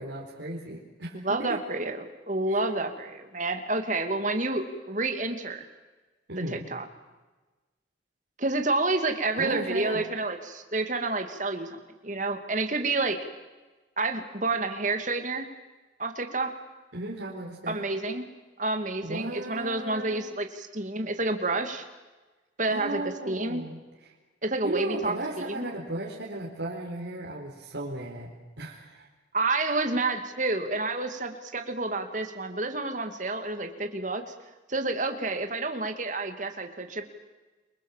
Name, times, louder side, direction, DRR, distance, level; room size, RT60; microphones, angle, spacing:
voice 1, 0.0-1.6 2.5-2.6 6.3-6.7 9.4-10.0 16.9-17.8 19.0-20.2 22.7-24.1 24.6-28.3 28.6-29.1, right 1 dB, 70° right, -4 dB, 4.6 m, -35 dB
voice 2, 1.1-5.6 6.5-6.8 8.4-11.8 12.0-13.2 14.0-15.5 16.0-16.5 17.7-18.3 18.6-21.8 22.6-23.6 24.4-25.7 29.3-34.2 34.7-37.0, right 2 dB, 40° right, 6 dB, 2.5 m, -29 dB
29.5 x 24.0 x 7.4 m, 1.2 s
head